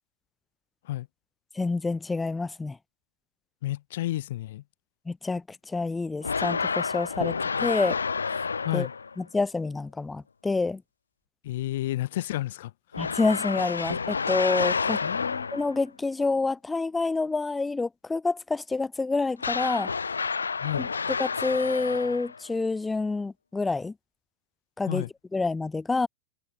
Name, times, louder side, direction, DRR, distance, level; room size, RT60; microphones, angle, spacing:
voice 1, 1.6-2.8 5.1-8.0 8.7-8.9 9.2-10.8 13.0-15.0 15.5-19.9 20.8-20.9 21.2-23.9 24.8-25.0 25.3-26.1, left 3 dB, 10° left, 0.4 m, -28 dB
voice 2, 3.6-4.6 8.6-8.9 11.4-12.7 15.0-15.5 20.6-20.9 24.9-25.1, left 15 dB, 55° left, 1.5 m, -31 dB
sound 1, 6.2-9.2 12.9-15.8 19.4-22.5, left 5 dB, 75° left, 2.2 m, -29 dB
figure-of-eight pair, 90°, 0 cm